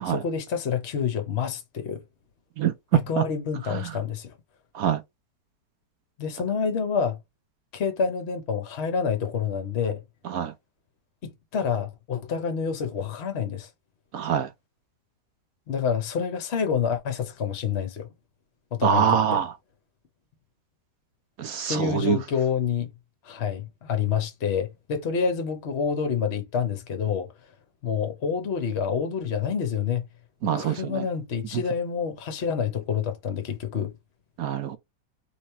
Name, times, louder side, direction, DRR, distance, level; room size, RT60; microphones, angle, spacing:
voice 1, 0.0-2.0 2.9-4.3 6.2-7.2 7.7-10.0 11.2-13.7 15.7-18.1 18.7-19.4 21.7-22.9 23.2-27.3 27.8-30.0 30.6-33.9, left 6 dB, 50° left, 0.8 m, -28 dB
voice 2, 14.1-14.5 18.8-19.5 21.4-22.2 30.4-31.0 34.4-34.8, right 8 dB, 65° right, 1.0 m, -25 dB
3.3 x 3.0 x 4.3 m
omnidirectional pair, 1.9 m